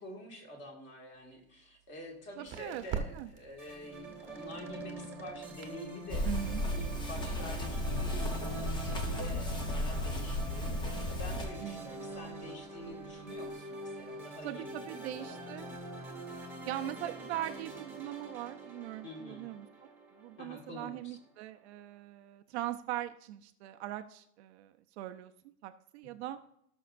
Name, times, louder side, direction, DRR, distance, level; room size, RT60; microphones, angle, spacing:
voice 1, 0.0-6.3 6.7-15.8 19.0-19.5 20.4-21.2, left 1 dB, 25° left, 1 dB, 2.0 m, -48 dB
sound 1, 1.1-13.5, right 6 dB, 25° right, 1.0 m, -49 dB
voice 2, 2.4-2.8 3.1-3.3 6.2-6.6 11.6-12.0 14.4-15.7 16.7-19.9 20.2-25.3 25.6-26.4, right 13 dB, 50° right, 8 dB, 0.6 m, -40 dB
sound 2, 3.6-21.0, right 2 dB, 5° right, 1.4 m, -45 dB
sound 3, 6.1-11.5, left 1 dB, 10° left, 0.7 m, -34 dB
17.5 x 6.3 x 2.5 m, 0.73 s
supercardioid pair, 155°, 42 cm